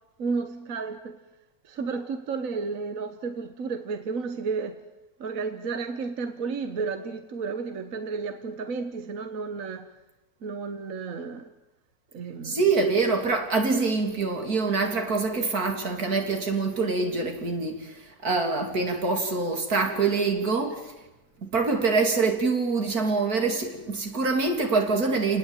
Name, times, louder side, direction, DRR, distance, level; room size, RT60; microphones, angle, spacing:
voice 1, 0.2-1.2 1.7-4.8 5.2-9.9 10.4-11.4 12.1-12.6, right 4 dB, 65° right, 1.7 m, -32 dB
voice 2, 12.4-18.0 18.2-20.9 21.4-25.4, right 4 dB, 90° right, 3.6 m, -25 dB
29.5 x 19.0 x 9.1 m
omnidirectional pair, 1.5 m